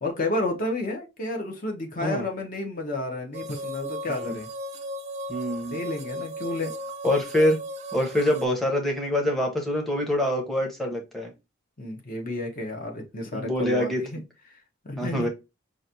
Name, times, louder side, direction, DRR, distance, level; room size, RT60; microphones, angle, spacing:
voice 1, 0.0-4.5 5.7-6.7 11.8-14.2 14.5-14.6 14.8-15.3, left 2 dB, 40° left, 1.0 m, -31 dB
sound 1, 3.3-8.5, equal, 35° right, 0.4 m, -36 dB
voice 2, 5.3-5.8 7.0-7.6 7.9-11.3 13.3-14.0 15.0-15.3, left 1 dB, ahead, 0.9 m, -25 dB
5.0 x 2.5 x 2.7 m
head